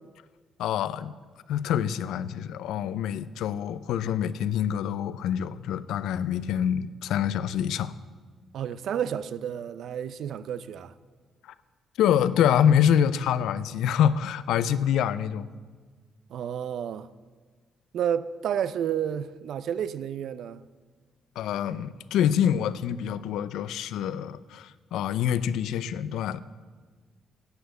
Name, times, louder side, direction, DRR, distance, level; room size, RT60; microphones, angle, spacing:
voice 1, 0.6-1.1 1.5-7.9 12.0-15.5 21.4-26.4, left 9 dB, 85° left, 0.5 m, -26 dB
voice 2, 8.5-10.9 16.3-17.1 17.9-20.6, right 9 dB, 70° right, 0.5 m, -31 dB
11.0 x 8.2 x 7.9 m
cardioid pair, 90°, 0 cm